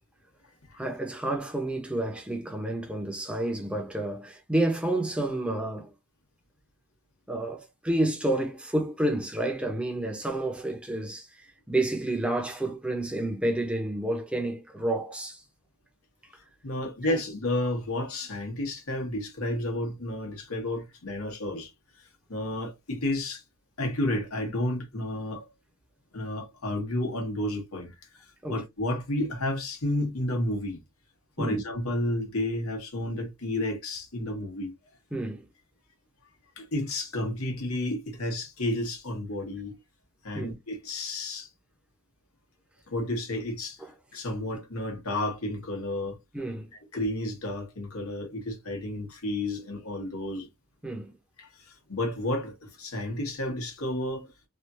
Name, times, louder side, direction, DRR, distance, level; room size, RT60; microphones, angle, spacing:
voice 1, 0.8-5.9 7.3-11.3 11.7-15.4 17.0-17.2 28.4-28.6 31.4-31.6 35.1-35.4 40.3-40.5 43.8-43.9 46.3-46.7 50.8-51.1, right 1 dB, 5° right, 0.8 m, -29 dB
voice 2, 16.6-21.7 22.3-23.4 23.8-25.4 26.1-27.9 28.5-30.8 31.4-34.7 36.6-39.8 40.2-41.5 42.9-43.8 44.1-46.2 46.9-50.5 51.4-54.3, left 1 dB, 80° left, 1.4 m, -31 dB
3.4 x 2.7 x 2.7 m
head